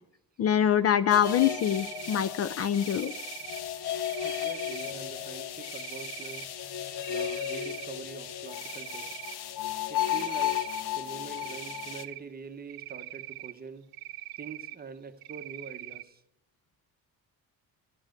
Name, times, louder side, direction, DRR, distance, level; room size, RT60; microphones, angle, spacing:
voice 1, 0.4-3.1, left 9 dB, 40° left, 0.4 m, -25 dB
sound 1, 1.1-12.0, left 10 dB, 75° left, 1.0 m, -34 dB
Cricket, 1.3-2.2 2.7-3.6 4.0-4.9 5.6-6.4 6.9-7.9 8.2-9.4 10.0-10.8 11.3-12.2 12.7-13.5 13.9-14.7 15.2-16.0, right 17 dB, 70° right, 0.8 m, -42 dB
voice 2, 4.2-6.5 7.1-9.2 9.9-10.6 10.9-13.9 14.4-16.2, right 5 dB, 25° right, 0.8 m, -44 dB
12.0 x 7.3 x 8.8 m
cardioid pair, 160°, 38 cm